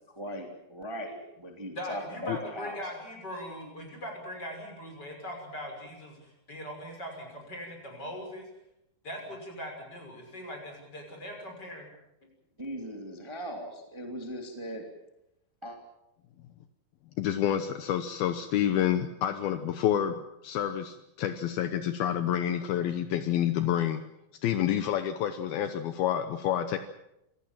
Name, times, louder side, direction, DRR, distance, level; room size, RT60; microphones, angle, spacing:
voice 1, 0.1-2.8 12.6-14.8 15.6-15.8, equal, 10° right, 2 dB, 2.4 m, -39 dB
voice 2, 1.8-8.5 9.0-11.9, equal, 25° left, 2 dB, 6.5 m, -40 dB
voice 3, 17.2-24.0 24.4-26.8, left 10 dB, 75° left, 9 dB, 2.7 m, -28 dB
27.0 x 17.5 x 7.5 m, 0.86 s
omnidirectional pair, 4.5 m